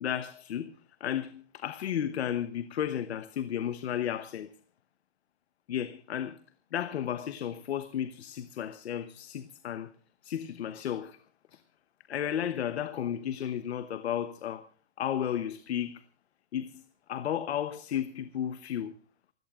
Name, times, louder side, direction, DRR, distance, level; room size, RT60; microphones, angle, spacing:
voice 1, 0.0-4.5 5.7-6.4 6.7-9.9 10.2-11.2 11.5-11.6 12.1-14.6 15.0-16.0 16.5-16.8 17.1-18.9, left 10 dB, 65° left, 1.1 m, -33 dB
28.5 x 16.5 x 2.4 m
hypercardioid pair, 165°, 34 cm